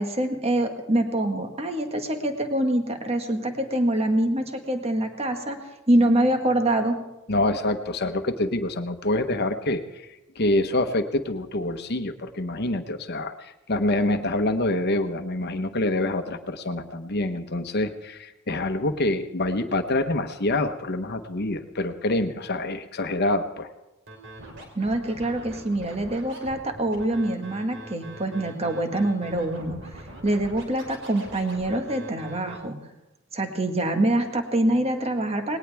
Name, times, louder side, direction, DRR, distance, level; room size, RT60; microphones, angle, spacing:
voice 1, 0.0-5.6 5.9-7.0 24.7-29.8 30.2-32.8 33.3-35.6, right 1 dB, 30° right, 5 dB, 1.6 m, -25 dB
voice 2, 7.3-10.1 10.4-23.7, left 2 dB, 50° left, 8 dB, 1.1 m, -26 dB
Scratching (performance technique), 24.1-32.6, right 1 dB, 60° right, 3.4 m, -42 dB
19.5 x 18.5 x 3.5 m, 0.96 s
head